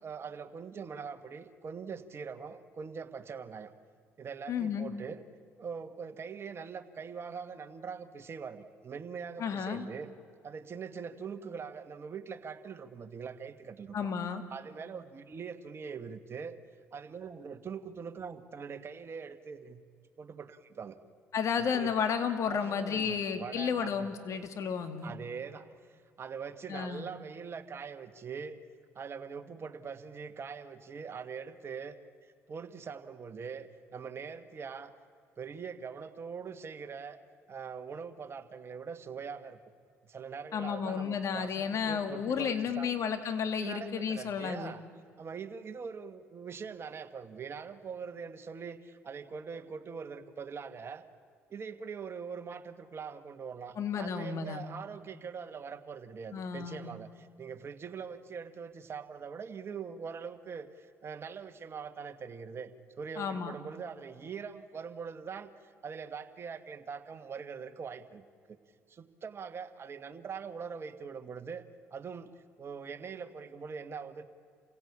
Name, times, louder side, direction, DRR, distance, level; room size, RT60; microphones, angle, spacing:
voice 1, 0.0-3.7 4.2-5.2 5.6-10.1 10.4-13.9 14.5-16.6 16.9-19.9 20.2-21.0 21.6-21.9 22.5-24.1 25.0-28.6 28.9-34.9 35.4-37.2 37.5-39.6 40.0-43.1 43.6-44.8 45.2-51.0 51.5-62.7 63.0-68.2 68.9-71.6 71.9-74.2, right 6 dB, 45° right, 8 dB, 1.6 m, -42 dB
voice 2, 4.5-4.9 9.4-9.9 13.9-14.4 21.3-25.1 26.7-27.1 40.5-44.7 53.8-54.6 56.3-56.9 63.2-63.5, left 7 dB, 55° left, 8 dB, 2.2 m, -32 dB
28.0 x 16.5 x 8.5 m, 2.1 s
hypercardioid pair, 65°, 6 cm